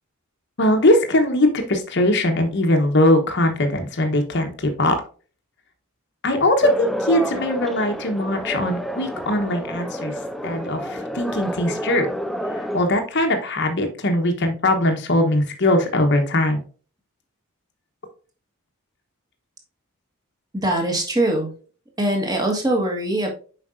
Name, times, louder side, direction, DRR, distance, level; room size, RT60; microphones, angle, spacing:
voice 1, 0.6-4.9 6.2-10.1 10.4-12.1 12.5-16.6, left 1 dB, 50° left, 4 dB, 1.0 m, -20 dB
sound 1, 6.6-12.8, equal, ahead, 0.3 m, -29 dB
voice 2, 20.5-21.5 22.0-23.3, right 1 dB, 15° right, 1 dB, 1.4 m, -22 dB
7.4 x 5.2 x 2.5 m, 0.38 s
head